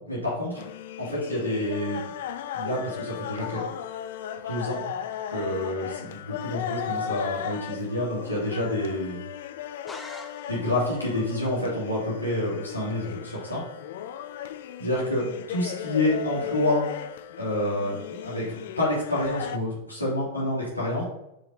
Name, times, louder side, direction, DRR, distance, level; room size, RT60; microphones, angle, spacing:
voice 1, 0.1-0.6 1.0-2.0 2.5-3.6 4.5-4.9 5.3-9.2 10.5-13.6 14.8-16.8 17.4-21.0, left 1 dB, 85° left, -7 dB, 2.6 m, -28 dB
sound 1, 0.6-19.6, left 9 dB, 55° left, 0.4 m, -36 dB
sound 2, 9.9-11.0, left 2 dB, 15° left, 0.9 m, -43 dB
5.9 x 5.1 x 3.9 m, 0.86 s
figure-of-eight pair, 90°, 0 cm